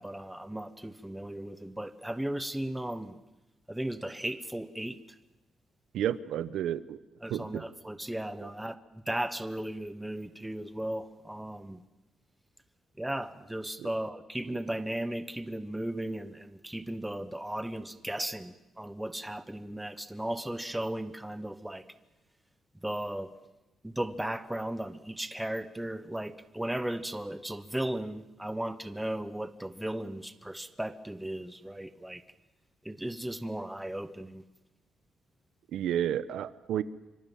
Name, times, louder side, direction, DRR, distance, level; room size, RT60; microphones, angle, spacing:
voice 1, 0.0-3.2 3.7-5.0 7.2-11.8 13.0-21.8 22.8-23.3 23.8-32.2 32.8-34.4, right 1 dB, 5° right, 11 dB, 1.1 m, -36 dB
voice 2, 5.9-7.0 7.3-7.6 8.4-8.5 13.8-13.9 35.7-36.8, right 10 dB, 85° right, 15 dB, 1.0 m, -31 dB
25.5 x 24.5 x 7.3 m, 1.0 s
cardioid pair, 145°, 0 cm